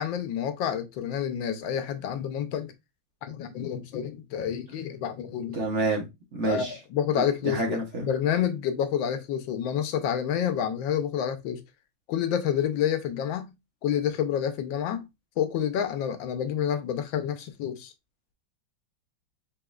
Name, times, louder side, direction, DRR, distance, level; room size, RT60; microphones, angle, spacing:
voice 1, 0.0-2.7 3.2-5.6 6.4-11.6 12.1-13.5 13.8-15.1 15.4-17.9, left 9 dB, 90° left, 1.4 m, -28 dB
voice 2, 5.5-6.7 7.2-8.1, right 2 dB, 50° right, 0.9 m, -29 dB
4.0 x 3.5 x 2.3 m
omnidirectional pair, 2.0 m